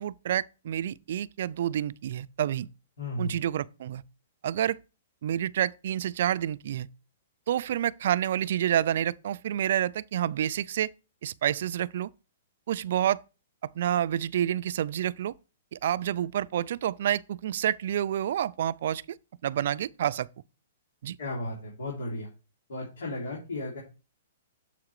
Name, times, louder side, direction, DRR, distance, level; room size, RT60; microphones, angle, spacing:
voice 1, 0.0-2.7 3.2-4.0 4.4-4.8 5.2-6.9 7.5-10.9 11.2-12.1 12.7-13.2 13.8-15.3 15.7-19.2 19.4-20.3 21.0-21.2, right 11 dB, 60° right, 0.3 m, -28 dB
voice 2, 3.0-3.3 21.2-22.3 22.7-23.8, left 1 dB, 85° left, 3.2 m, -34 dB
7.3 x 4.9 x 4.7 m
hypercardioid pair, 150°, 0 cm